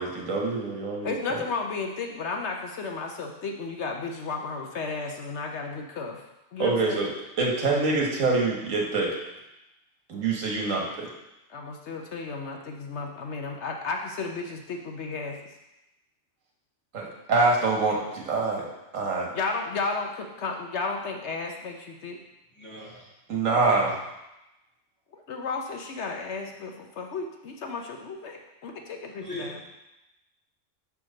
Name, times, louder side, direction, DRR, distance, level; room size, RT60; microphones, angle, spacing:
voice 1, 0.0-1.4 6.6-7.1 7.4-9.1 10.1-11.1 16.9-18.7 18.9-19.3 23.3-23.9, right 3 dB, 85° right, -1 dB, 1.7 m, -25 dB
voice 2, 1.0-6.2 6.5-7.1 11.5-15.4 19.2-22.2 25.1-29.6, left 4 dB, 65° left, 3 dB, 1.0 m, -33 dB
voice 3, 22.6-23.1 23.7-23.9 29.2-29.6, left 1 dB, 10° left, -8 dB, 2.2 m, -39 dB
5.8 x 4.6 x 6.3 m, 0.94 s
omnidirectional pair, 1.3 m